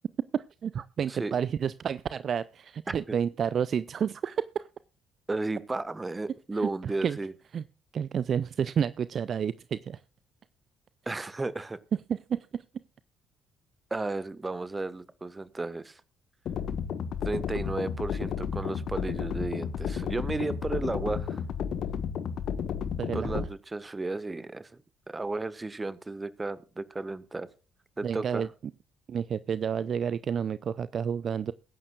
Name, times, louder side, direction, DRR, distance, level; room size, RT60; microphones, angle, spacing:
voice 1, 0.3-4.7 6.6-7.2 7.5-7.6 7.9-10.0 12.1-12.6 23.0-23.5 28.0-28.5 29.1-31.5, right 7 dB, 50° right, 17 dB, 0.5 m, -30 dB
voice 2, 5.3-7.3 11.0-11.8 13.9-16.0 17.2-21.4 23.1-24.8 25.1-27.5 28.0-28.5, right 3 dB, 20° right, 16 dB, 1.4 m, -33 dB
sound 1, 16.5-23.5, left 7 dB, 55° left, 1.3 m, -32 dB
21.5 x 11.0 x 2.4 m, 0.34 s
figure-of-eight pair, 45°, 0 cm